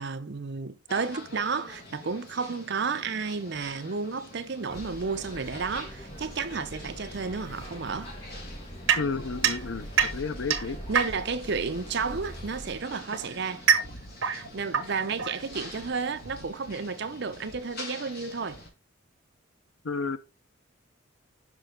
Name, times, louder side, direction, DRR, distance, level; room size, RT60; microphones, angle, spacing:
voice 1, 0.0-8.1 10.9-13.7 14.2-18.6, right 5 dB, 55° right, 0.6 m, -32 dB
sound 1, 0.9-18.7, left 1 dB, 50° left, 2.0 m, -46 dB
sound 2, 4.7-12.8, equal, 25° left, 1.4 m, -43 dB
sound 3, 8.9-11.5 12.5-15.9, right 7 dB, 75° right, 1.1 m, -27 dB
voice 2, 9.0-10.8 19.8-20.2, left 4 dB, 70° left, 0.6 m, -32 dB
6.2 x 5.7 x 3.8 m
head